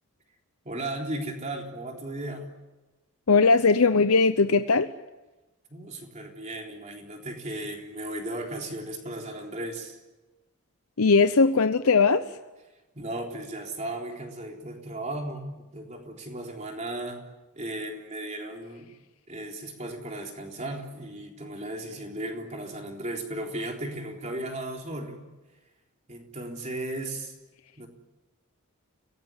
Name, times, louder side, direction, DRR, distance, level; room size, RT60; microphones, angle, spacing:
voice 1, 0.6-2.5 5.7-10.0 12.9-17.2 17.6-18.9 19.3-25.3 26.1-27.3 27.8-27.9, right 1 dB, 30° right, 1 dB, 3.7 m, -36 dB
voice 2, 3.3-4.9 11.0-12.3, left 4 dB, 80° left, 10 dB, 0.8 m, -19 dB
29.0 x 17.5 x 9.8 m, 1.1 s
head